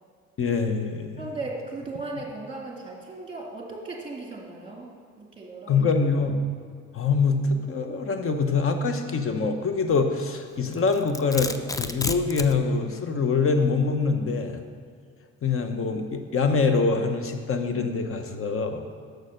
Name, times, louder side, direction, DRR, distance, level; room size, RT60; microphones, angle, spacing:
voice 1, 0.4-1.2 5.7-6.4 6.9-14.6 15.4-18.8, left 4 dB, 45° left, 6 dB, 0.9 m, -24 dB
voice 2, 1.2-4.9 5.2-5.7, right 3 dB, 20° right, -1 dB, 2.2 m, -36 dB
Domestic sounds home sounds, 10.6-12.6, left 2 dB, 10° left, 0.4 m, -31 dB
6.5 x 6.5 x 6.4 m, 2.1 s
cardioid pair, 90°, 30 cm